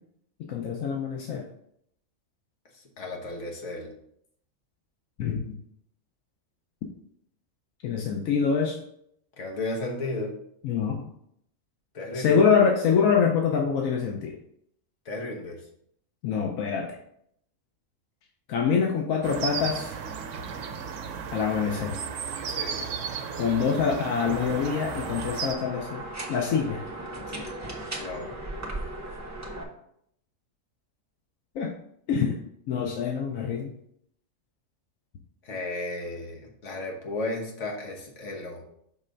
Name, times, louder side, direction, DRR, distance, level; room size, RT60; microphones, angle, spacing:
voice 1, 0.5-1.5 5.2-5.6 7.8-8.8 10.6-11.0 12.1-14.4 16.2-17.0 18.5-19.9 21.3-22.0 23.4-26.0 26.3-26.8 31.5-31.7 32.1-32.4 32.7-33.7, left 6 dB, 85° left, 1 dB, 1.1 m, -25 dB
voice 2, 3.0-3.9 9.4-10.3 11.9-12.4 15.0-15.6 22.5-22.9 27.3-27.4 27.9-28.4 35.4-38.6, left 2 dB, 65° left, 0 dB, 1.5 m, -34 dB
sound 1, 19.2-25.5, right 6 dB, 70° right, 1.0 m, -34 dB
sound 2, 24.2-29.6, right 1 dB, 15° right, 1.0 m, -37 dB
6.2 x 3.2 x 5.1 m, 0.72 s
omnidirectional pair, 1.4 m